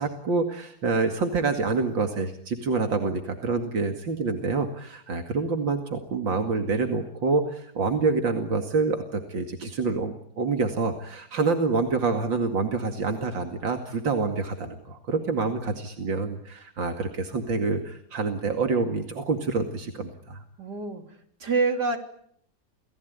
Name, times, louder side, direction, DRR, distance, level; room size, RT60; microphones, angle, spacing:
voice 1, 0.0-20.4, right 4 dB, 80° right, 5 dB, 3.0 m, -27 dB
voice 2, 20.6-21.0 21.4-22.0, right 4 dB, 60° right, 5 dB, 3.9 m, -25 dB
29.0 x 19.0 x 9.6 m, 0.67 s
omnidirectional pair, 2.0 m